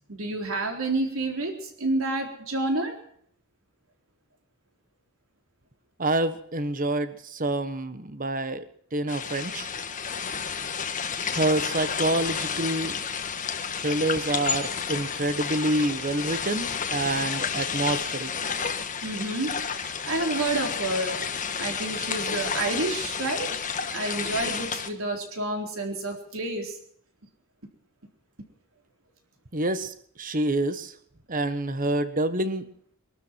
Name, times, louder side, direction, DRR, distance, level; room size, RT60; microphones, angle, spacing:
voice 1, 0.1-2.9 19.0-21.2 21.6-23.5 23.9-26.8, right 2 dB, 70° right, 3 dB, 4.0 m, -29 dB
voice 2, 6.0-8.6 8.9-9.7 11.3-12.9 13.8-18.3 29.5-30.9 31.3-32.7, right 2 dB, 40° right, 11 dB, 1.3 m, -27 dB
sound 1, 9.1-24.9, left 6 dB, 35° left, 1.4 m, -31 dB
24.0 x 13.0 x 4.6 m, 0.64 s
head